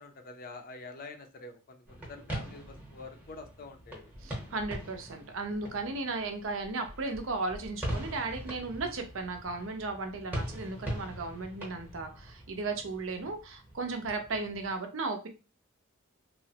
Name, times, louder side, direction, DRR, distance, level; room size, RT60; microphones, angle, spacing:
voice 1, 0.0-4.1, left 3 dB, 45° left, 6 dB, 0.4 m, -46 dB
sound 1, 1.9-14.7, equal, 10° right, 0.8 m, -42 dB
voice 2, 4.2-15.3, right 3 dB, 65° right, 5 dB, 0.6 m, -35 dB
3.0 x 2.0 x 2.7 m, 0.32 s
head